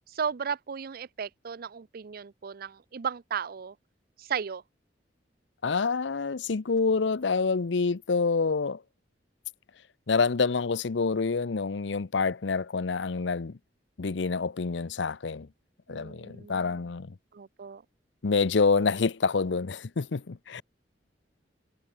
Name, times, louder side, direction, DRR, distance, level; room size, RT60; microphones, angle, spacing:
voice 1, 0.1-3.8 4.2-4.6 15.9-16.8 17.3-17.8, right 6 dB, 55° right, 0.5 m, -35 dB
voice 2, 5.6-8.8 10.1-13.6 14.0-15.5 15.9-17.1 18.2-20.6, left 4 dB, 80° left, 0.7 m, -27 dB
head